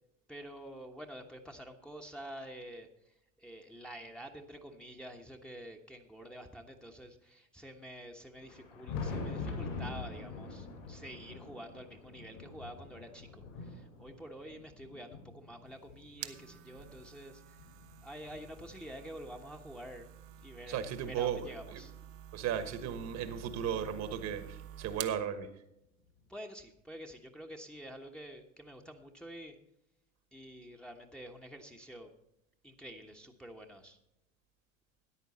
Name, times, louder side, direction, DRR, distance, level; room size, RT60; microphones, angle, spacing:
voice 1, 0.3-17.6 18.0-20.1 20.4-21.9 26.3-29.6 30.3-32.1 32.6-34.0, equal, ahead, 2 dB, 1.2 m, -48 dB
Thunder, 8.3-16.9 17.6-19.3 20.4-20.5 21.1-21.2 23.0-23.1 24.5-24.6 26.2-26.3, left 4 dB, 70° left, 5.5 m, -44 dB
sound 1, 15.7-25.3, right 11 dB, 70° right, 1.0 m, -49 dB
voice 2, 20.7-21.8 22.3-25.5, right 8 dB, 40° right, 11 dB, 1.4 m, -36 dB
13.5 x 10.0 x 4.2 m, 0.83 s
hypercardioid pair, 85°, 40 cm